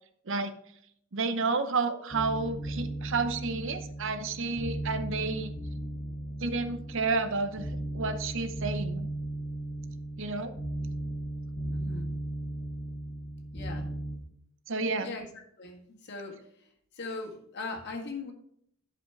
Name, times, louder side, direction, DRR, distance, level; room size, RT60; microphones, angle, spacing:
voice 1, 1.1-5.5 6.4-7.7 7.9-9.1 10.2-10.5 14.7-15.1, right 3 dB, 65° right, 10 dB, 0.8 m, -30 dB
sound 1, 2.1-14.2, right 1 dB, 20° left, 2.2 m, -36 dB
voice 2, 11.7-12.1 13.5-13.9 15.0-15.3 15.6-18.3, left 3 dB, 55° left, 1 dB, 1.9 m, -40 dB
11.5 x 5.1 x 4.7 m, 0.69 s
head